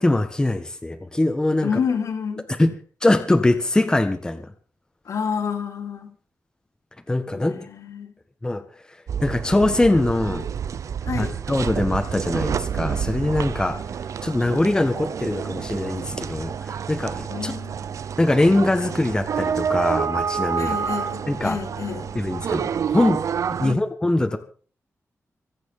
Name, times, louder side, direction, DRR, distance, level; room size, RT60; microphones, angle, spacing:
voice 1, 0.0-1.7 2.6-2.7 3.0-4.4 7.1-7.6 8.4-8.6 9.2-10.4 11.2-13.8 14.2-17.5 18.2-20.7 21.3-21.6 22.1-23.2 23.6-24.4, left 2 dB, 15° left, 6 dB, 1.5 m, -22 dB
voice 2, 1.6-2.5 5.1-6.1 7.3-8.1 11.1-11.3 17.3-18.0 20.6-22.1 23.6-23.8, left 6 dB, 75° left, 3 dB, 3.7 m, -29 dB
sound 1, 9.1-23.7, right 7 dB, 80° right, 0.7 m, -28 dB
24.0 x 9.1 x 5.6 m, 0.42 s
wide cardioid pair, 170°, 5 cm